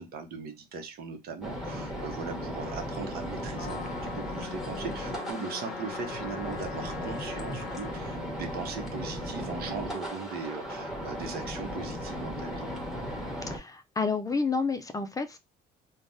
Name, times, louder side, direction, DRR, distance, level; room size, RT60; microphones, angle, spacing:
voice 1, 0.0-12.7, right 5 dB, 65° right, 0.8 m, -39 dB
sound 1, 1.4-13.6, equal, ahead, 1.0 m, -36 dB
Trumpet, 3.5-8.0, left 8 dB, 80° left, 0.6 m, -42 dB
voice 2, 13.5-15.4, left 4 dB, 20° left, 0.4 m, -30 dB
3.3 x 2.1 x 2.6 m
cardioid pair, 110°, 17 cm